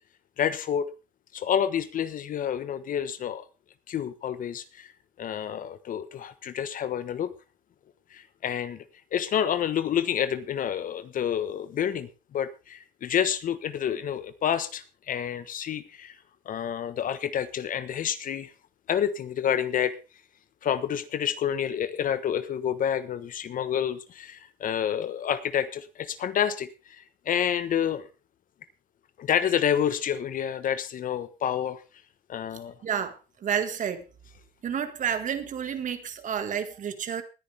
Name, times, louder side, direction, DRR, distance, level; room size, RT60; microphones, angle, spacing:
voice 1, 0.4-0.9 1.3-3.4 3.9-4.9 5.2-7.3 8.1-8.8 9.1-16.2 16.4-18.5 18.9-20.0 20.6-28.0 29.2-31.8 32.3-32.7, left 9 dB, 55° left, 13 dB, 1.2 m, -29 dB
voice 2, 32.8-34.0 34.6-37.2, right 8 dB, 50° right, 9 dB, 1.9 m, -30 dB
19.5 x 10.0 x 3.5 m, 0.31 s
cardioid pair, 110°, 17 cm